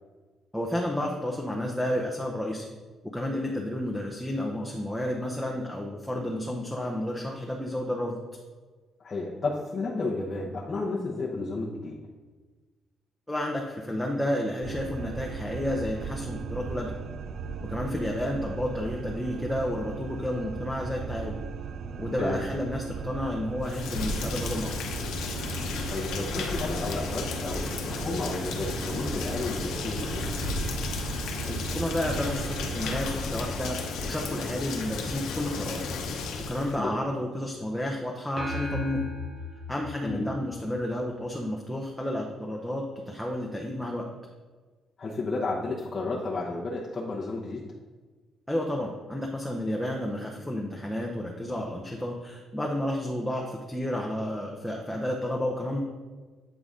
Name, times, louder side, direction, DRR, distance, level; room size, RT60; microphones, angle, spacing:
voice 1, 0.5-2.7 3.1-8.2 13.3-16.9 17.6-21.4 22.0-24.7 31.5-35.8 36.5-39.0 39.7-44.1 48.5-55.8, left 1 dB, 5° left, 0 dB, 0.8 m, -31 dB
voice 2, 9.0-12.0 22.2-22.4 25.9-30.3 36.8-36.9 40.0-40.3 45.0-47.6, left 3 dB, 35° left, -5 dB, 0.9 m, -32 dB
sound 1, 14.6-32.9, right 5 dB, 60° right, 0.3 m, -38 dB
Rain, 23.6-36.8, left 3 dB, 85° left, 0.8 m, -33 dB
sound 2, 38.4-41.0, left 2 dB, 40° right, 1.0 m, -37 dB
8.3 x 3.9 x 3.7 m, 1.4 s
cardioid pair, 90°, 0 cm